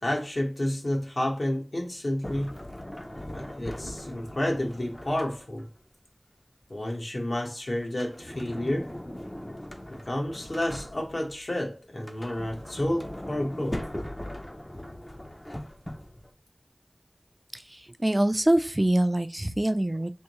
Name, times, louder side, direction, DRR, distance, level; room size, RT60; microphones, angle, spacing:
voice 1, 0.0-2.5 3.3-5.7 6.7-8.9 9.9-13.8, left 1 dB, 75° left, 1.2 m, -30 dB
Sliding door, 2.2-5.8 7.8-11.4 11.9-16.3, left 1 dB, 25° left, 0.5 m, -40 dB
voice 2, 17.5-20.1, right 1 dB, 30° right, 0.4 m, -25 dB
3.6 x 2.7 x 2.9 m
wide cardioid pair, 40°, 0 cm